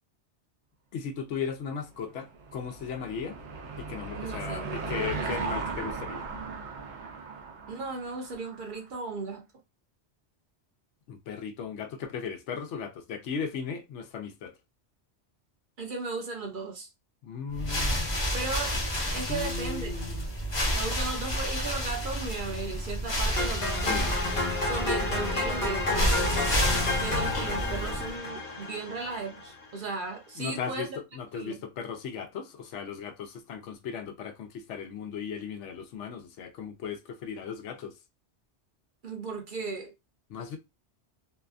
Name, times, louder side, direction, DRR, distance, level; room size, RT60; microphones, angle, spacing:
voice 1, 0.9-3.4 3.8-6.2 11.1-14.5 17.2-18.1 19.3-20.3 23.9-24.1 30.4-38.0 40.3-40.6, left 6 dB, 85° left, 0.9 m, -37 dB
Car passing by / Engine, 1.9-8.8, right 4 dB, 80° right, 0.9 m, -37 dB
voice 2, 4.2-5.3 7.7-9.5 15.8-16.9 18.3-18.8 19.1-19.9 20.7-24.0 24.6-26.6 27.0-30.9 31.3-31.6 39.0-39.9, right 4 dB, 55° right, 0.7 m, -36 dB
sound 1, 17.5-28.2, equal, 25° left, 0.7 m, -30 dB
sound 2, 23.4-29.5, left 2 dB, 55° left, 1.1 m, -30 dB
2.7 x 2.2 x 2.4 m
omnidirectional pair, 1.2 m